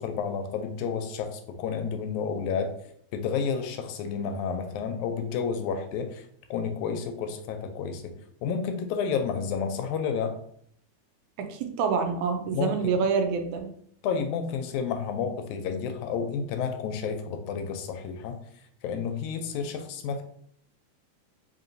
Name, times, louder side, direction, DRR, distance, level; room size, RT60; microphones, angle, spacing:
voice 1, 0.0-2.8 3.1-8.1 8.4-10.4 12.5-12.9 14.0-18.4 18.8-20.2, left 6 dB, 85° left, 6 dB, 1.9 m, -30 dB
voice 2, 11.4-13.7, right 5 dB, 80° right, 5 dB, 2.0 m, -27 dB
4.7 x 2.9 x 2.6 m, 0.66 s
omnidirectional pair, 3.4 m